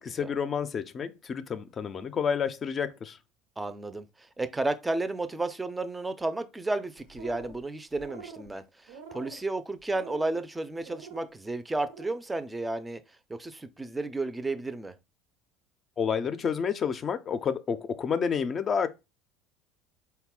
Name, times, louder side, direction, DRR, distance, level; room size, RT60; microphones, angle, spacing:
voice 1, 0.0-3.2 16.0-18.9, left 6 dB, 40° left, 0.5 m, -29 dB
voice 2, 3.6-13.0 13.3-14.9, right 2 dB, 15° right, 0.5 m, -32 dB
sound 1, 7.0-7.6 7.9-8.5 8.9-9.4 9.9-10.4 10.8-11.3 11.7-12.2, right 5 dB, 75° right, 0.7 m, -45 dB
4.0 x 2.2 x 3.7 m
hypercardioid pair, 75°, 0 cm